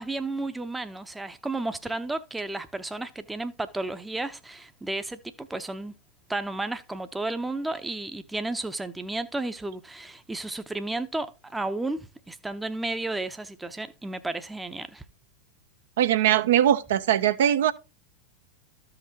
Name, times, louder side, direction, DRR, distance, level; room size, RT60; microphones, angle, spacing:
voice 1, 0.0-5.9 6.3-15.0, right 2 dB, 5° right, 0.7 m, -33 dB
voice 2, 16.0-17.7, right 11 dB, 60° right, 0.6 m, -21 dB
13.5 x 5.8 x 2.8 m
figure-of-eight pair, 90°, 0 cm